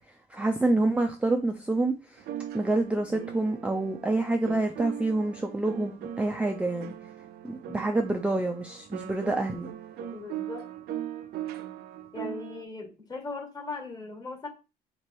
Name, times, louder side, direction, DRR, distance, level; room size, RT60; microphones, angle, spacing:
voice 1, 0.3-2.2 2.5-6.9 7.4-9.7, right 2 dB, 5° right, 0.4 m, -27 dB
sound 1, 2.2-12.6, right 10 dB, 70° right, 0.5 m, -40 dB
voice 2, 10.1-10.7 12.1-14.5, left 3 dB, 25° left, 1.4 m, -38 dB
2.9 x 2.9 x 4.5 m
cardioid pair, 110°, 17 cm